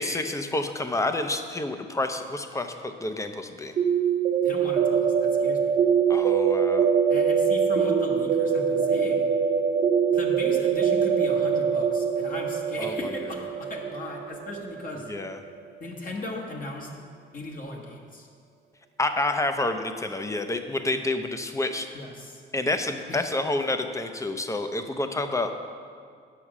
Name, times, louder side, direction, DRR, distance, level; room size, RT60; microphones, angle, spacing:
voice 1, 0.0-3.7 6.1-6.9 12.8-13.1 15.1-15.4 19.0-21.9 22.5-25.5, left 2 dB, 15° left, 7 dB, 0.7 m, -29 dB
sound 1, 3.8-15.5, right 7 dB, 35° right, 0.7 m, -23 dB
voice 2, 4.4-5.7 7.1-9.3 10.1-15.1 15.8-16.9 17.3-18.3 21.9-22.4 23.1-23.3, left 2 dB, 45° left, -1 dB, 1.4 m, -37 dB
8.4 x 6.2 x 6.1 m, 2.2 s
cardioid pair, 90°, 20 cm